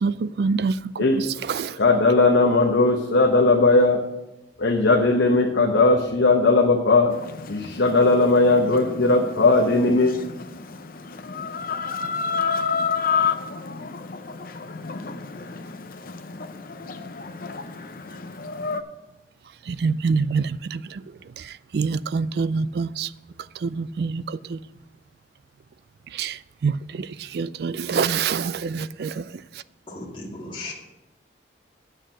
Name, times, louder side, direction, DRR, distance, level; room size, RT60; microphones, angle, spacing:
voice 1, 0.0-1.8 19.7-21.0 21.4-23.1 23.6-24.6 26.1-29.6, right 5 dB, 55° right, 0.3 m, -26 dB
voice 2, 1.8-4.0 4.6-7.1 7.5-10.1, left 3 dB, 75° left, 0.9 m, -18 dB
Chicken rooster, 7.1-18.8, left 5 dB, 50° left, 0.6 m, -30 dB
voice 3, 29.9-30.7, left 2 dB, 25° left, 1.8 m, -36 dB
8.1 x 6.5 x 7.6 m
head